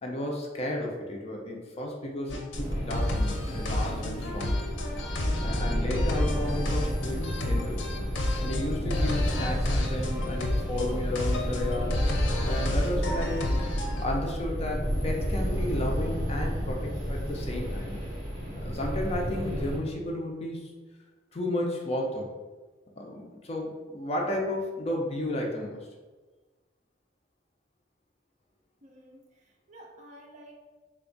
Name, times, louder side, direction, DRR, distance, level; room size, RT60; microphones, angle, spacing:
voice 1, 0.0-4.6 5.4-7.8 8.4-12.0 12.5-13.6 14.0-18.0 18.6-20.7 21.3-22.3 23.0-25.8, left 1 dB, 35° left, 0 dB, 0.5 m, -33 dB
sound 1, 2.3-14.0, left 1 dB, 90° left, 0.5 m, -31 dB
sound 2, 2.5-19.8, equal, 20° left, 1.3 m, -31 dB
voice 2, 28.8-30.5, right 1 dB, 40° right, 0 dB, 0.6 m, -51 dB
3.3 x 2.3 x 3.8 m, 1.3 s
head